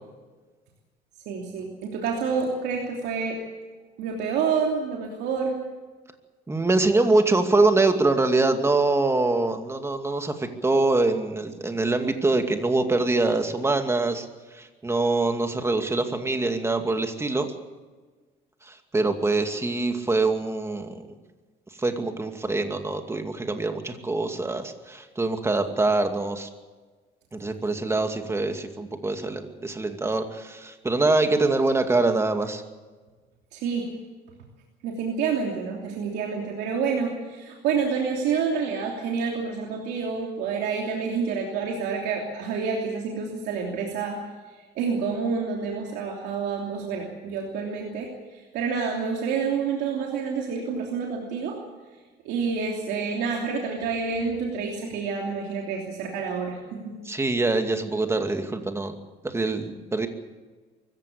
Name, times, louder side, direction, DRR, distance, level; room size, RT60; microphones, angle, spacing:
voice 1, 1.3-3.4 4.0-5.6 33.5-33.9 34.8-44.2 44.7-51.6 52.2-57.0, right 5 dB, 85° right, 0 dB, 3.1 m, -28 dB
voice 2, 6.5-14.3 14.5-17.5 18.7-21.0 21.8-26.5 27.3-32.6 57.1-58.9 59.2-60.1, right 2 dB, 15° right, 6 dB, 2.4 m, -24 dB
24.0 x 15.0 x 8.5 m, 1.3 s
cardioid pair, 110°, 17 cm